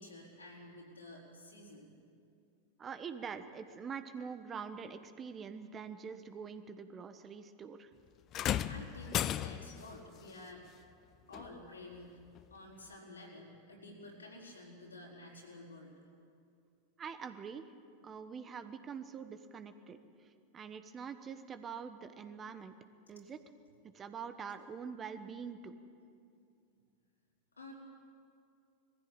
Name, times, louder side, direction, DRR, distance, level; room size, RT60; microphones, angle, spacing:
voice 1, 0.0-1.9 8.7-10.7 11.3-12.2 12.5-15.9 27.6-27.7, left 1 dB, 85° left, -2 dB, 4.4 m, -51 dB
voice 2, 2.8-7.9 17.0-17.7 18.0-22.7 23.1-23.4 23.9-25.7, right 6 dB, 25° right, 10 dB, 1.2 m, -45 dB
sound 1, 8.3-9.9 11.3-11.5 12.4-12.5, left 11 dB, 40° left, 0.6 m, -35 dB
20.5 x 15.0 x 8.9 m, 2.4 s
figure-of-eight pair, 90°, 0 cm